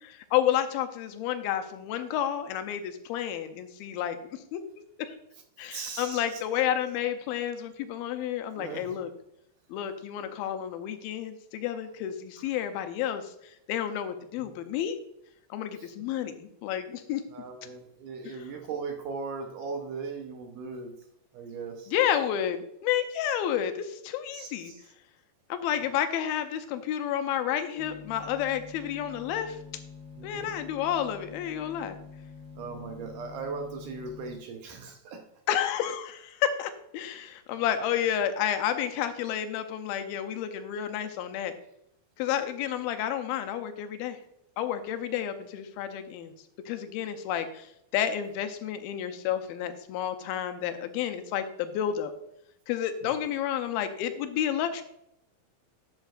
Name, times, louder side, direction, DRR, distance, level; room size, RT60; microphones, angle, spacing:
voice 1, 0.0-4.6 5.6-9.1 9.7-15.0 15.5-17.2 18.3-18.4 21.9-24.7 25.5-29.6 30.2-32.0 35.5-41.6 42.2-44.2 44.6-46.3 46.7-52.1 52.7-54.8, left 10 dB, 85° left, 8 dB, 2.5 m, -30 dB
voice 2, 5.7-6.4 8.6-9.0 14.4-14.5 15.8-15.9 17.3-20.9 21.3-21.9 24.3-24.8 30.2-30.5 32.6-35.2 53.0-53.1, right 4 dB, 70° right, 4 dB, 2.1 m, -38 dB
sound 1, 27.8-34.4, left 5 dB, ahead, 2.6 m, -46 dB
11.5 x 7.4 x 2.4 m, 0.78 s
omnidirectional pair, 4.3 m